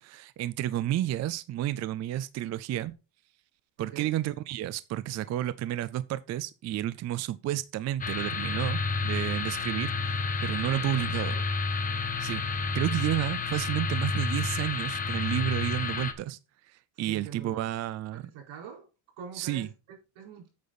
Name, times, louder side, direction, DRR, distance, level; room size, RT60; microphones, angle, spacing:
voice 1, 0.0-2.9 3.8-11.4 12.2-12.5 12.7-16.4 16.7-18.2 19.4-19.7, right 13 dB, 35° right, 0.4 m, -31 dB
voice 2, 3.8-4.1 10.7-11.4 16.9-17.7 18.1-18.9 19.2-20.5, right 7 dB, 75° right, 4.6 m, -45 dB
sound 1, 8.0-16.1, left 4 dB, 15° left, 1.0 m, -30 dB
8.6 x 8.1 x 4.1 m
cardioid pair, 170°, 49 cm